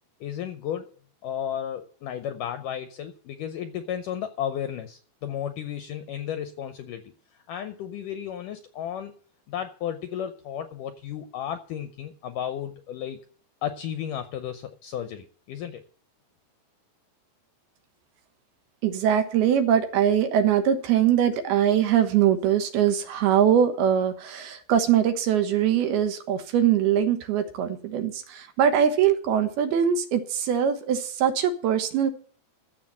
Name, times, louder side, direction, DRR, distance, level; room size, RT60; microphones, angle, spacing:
voice 1, 0.2-0.9 1.2-7.1 7.5-9.1 9.5-13.2 13.6-15.8, left 9 dB, 75° left, 2.0 m, -33 dB
voice 2, 18.8-32.1, right 9 dB, 75° right, 3.1 m, -22 dB
13.5 x 7.3 x 7.4 m
omnidirectional pair, 4.6 m